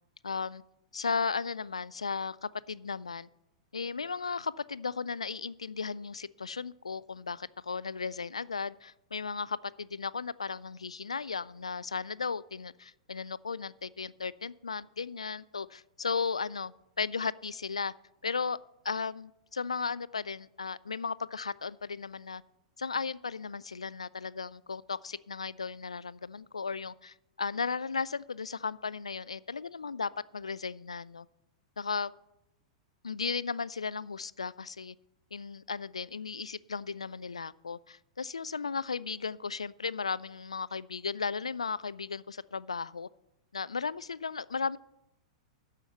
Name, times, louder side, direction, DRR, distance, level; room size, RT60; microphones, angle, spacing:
voice 1, 0.2-0.6 0.9-3.3 3.7-17.9 18.2-18.6 18.8-22.4 22.8-31.3 31.8-32.1 33.0-35.0 35.3-43.1 43.5-44.8, left 5 dB, 75° left, 20 dB, 0.4 m, -35 dB
13.0 x 5.7 x 7.9 m, 0.88 s
figure-of-eight pair, 100°, 3 cm